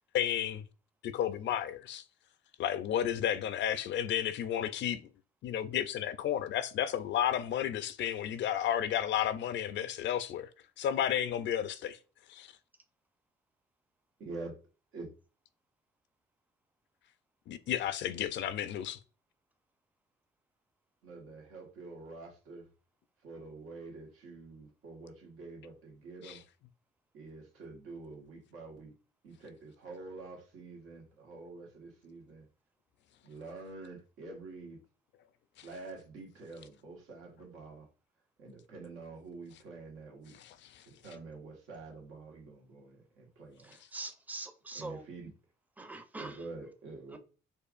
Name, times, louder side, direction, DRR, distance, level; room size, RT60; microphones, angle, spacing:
voice 1, 0.1-0.6 1.0-2.0 2.6-5.1 5.4-10.5 10.8-12.0 12.3-12.5 17.5-19.0 26.2-26.4 35.6-35.7 40.4-40.8, left 10 dB, 65° left, 0.4 m, -32 dB
voice 2, 14.2-14.5 14.9-15.0 21.0-22.7 23.2-26.4 27.1-28.9 29.2-32.5 33.2-34.8 35.6-37.9 38.4-40.4 40.8-43.8 44.7-45.3 46.2-47.2, right 3 dB, 90° right, 1.5 m, -47 dB
voice 3, 43.9-45.0 45.8-46.4 47.1-47.2, right 2 dB, 10° right, 0.5 m, -42 dB
4.4 x 2.5 x 2.4 m
cardioid pair, 90°, 20 cm